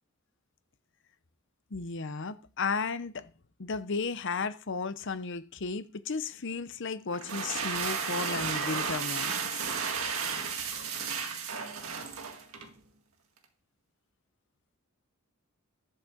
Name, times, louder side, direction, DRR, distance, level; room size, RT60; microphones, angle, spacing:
voice 1, 1.7-3.3 3.6-9.5, left 4 dB, 55° left, 0.8 m, -34 dB
sound 1, 7.1-12.7, right 5 dB, 70° right, 1.8 m, -33 dB
11.5 x 5.4 x 7.2 m
head